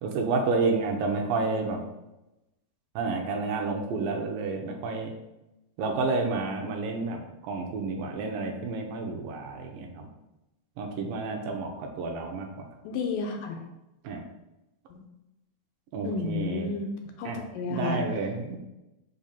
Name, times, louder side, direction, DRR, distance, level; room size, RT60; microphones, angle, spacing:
voice 1, 0.0-1.8 3.0-5.1 5.8-10.1 10.8-12.7 14.0-14.2 15.9-16.7 17.3-17.4 17.7-18.6, right 3 dB, 80° right, 2 dB, 2.4 m, -30 dB
voice 2, 12.8-13.6 14.9-15.0 16.0-16.9 17.2-18.1, left 4 dB, 80° left, 3 dB, 2.2 m, -31 dB
5.7 x 4.4 x 5.2 m, 0.95 s
omnidirectional pair, 4.2 m